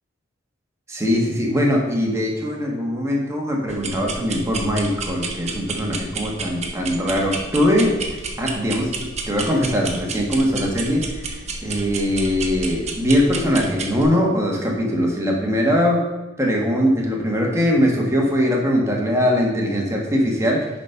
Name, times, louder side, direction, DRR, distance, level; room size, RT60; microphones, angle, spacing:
voice 1, 0.9-9.0 9.3-11.3 11.6-16.0 16.4-20.7, equal, 15° right, -1 dB, 1.7 m, -21 dB
sound 1, 3.7-14.0, right 3 dB, 35° right, 1.1 m, -31 dB
10.0 x 4.3 x 5.9 m, 1.1 s
head